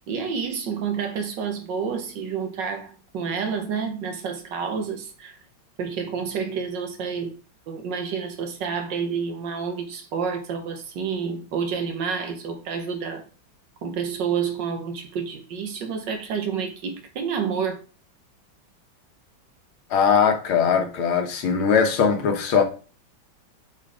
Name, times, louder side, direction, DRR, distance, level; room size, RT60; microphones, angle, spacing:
voice 1, 0.1-5.4 5.8-7.4 7.7-13.2 13.8-17.8, right 6 dB, 60° right, 1.7 m, -29 dB
voice 2, 19.9-22.6, left 6 dB, 90° left, 2.0 m, -20 dB
7.5 x 4.4 x 3.6 m
omnidirectional pair, 2.2 m